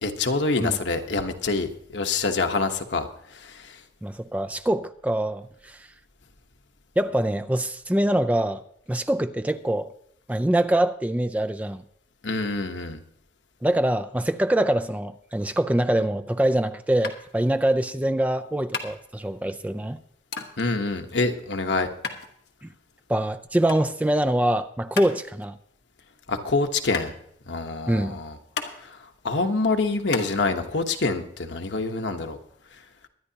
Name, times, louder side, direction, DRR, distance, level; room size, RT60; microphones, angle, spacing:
voice 1, 0.0-3.8 12.2-13.0 20.6-21.9 26.3-27.1 27.5-28.4 28.8-32.4, left 3 dB, 85° left, 1.1 m, -26 dB
voice 2, 4.0-5.9 7.0-8.6 8.9-9.9 10.3-11.8 13.6-20.0 22.6-22.7 23.1-25.6 27.9-28.2, right 1 dB, 10° right, 0.3 m, -24 dB
sound 1, 17.0-30.3, left 5 dB, 65° left, 1.3 m, -38 dB
23.0 x 9.9 x 2.8 m
head